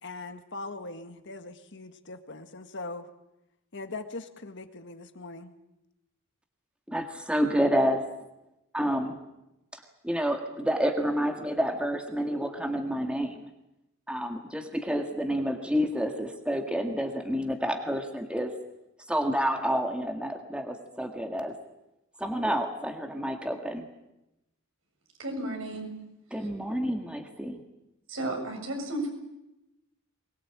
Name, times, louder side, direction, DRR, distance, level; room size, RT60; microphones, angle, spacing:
voice 1, 0.0-3.1 3.7-5.5, left 3 dB, 60° left, 8 dB, 1.8 m, -40 dB
voice 2, 6.9-8.0 8.7-9.2 9.7-13.4 14.1-18.5 19.1-21.5 22.2-23.9 26.3-27.6, equal, 5° right, 4 dB, 1.8 m, -29 dB
voice 3, 25.2-25.9 26.4-26.5 28.1-29.1, right 1 dB, 70° right, 3 dB, 7.4 m, -33 dB
23.0 x 21.0 x 8.8 m, 0.90 s
head